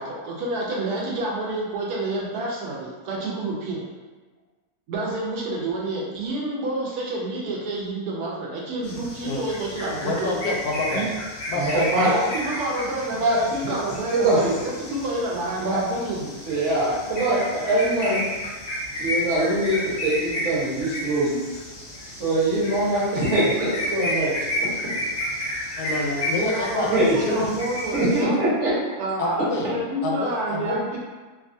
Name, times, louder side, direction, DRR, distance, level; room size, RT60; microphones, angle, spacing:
voice 1, 0.0-3.8 4.9-10.4 10.9-11.1 12.0-16.3 26.4-28.4 29.0-31.0, right 2 dB, 85° right, -3 dB, 1.2 m, -29 dB
sound 1, 8.8-28.2, left 1 dB, 70° left, 0.4 m, -32 dB
voice 2, 10.0-11.1 11.5-12.0 25.8-26.9 27.3-27.5 29.2-29.6 30.0-30.8, left 2 dB, 85° left, -1 dB, 1.1 m, -27 dB
voice 3, 11.5-12.1 13.2-13.4 13.6-13.7 14.1-14.6 15.6-15.8 16.4-18.2 18.9-21.3 22.2-24.3 24.6-24.9 26.9-27.2 27.9-28.7, right 1 dB, 55° right, -8 dB, 1.2 m, -23 dB
3.0 x 2.3 x 2.5 m, 1.3 s
omnidirectional pair, 1.6 m